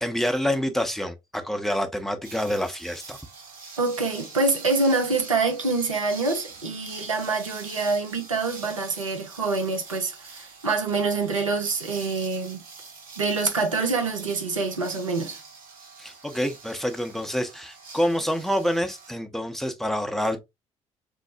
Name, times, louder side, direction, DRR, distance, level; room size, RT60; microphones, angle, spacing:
voice 1, 0.0-3.2 16.0-20.4, equal, ahead, 0.6 m, -27 dB
sound 1, 2.2-19.1, right 4 dB, 60° right, 0.8 m, -44 dB
voice 2, 3.8-12.6 13.2-15.4, right 3 dB, 90° right, 0.5 m, -26 dB
3.1 x 2.0 x 2.6 m
figure-of-eight pair, 45°, 16 cm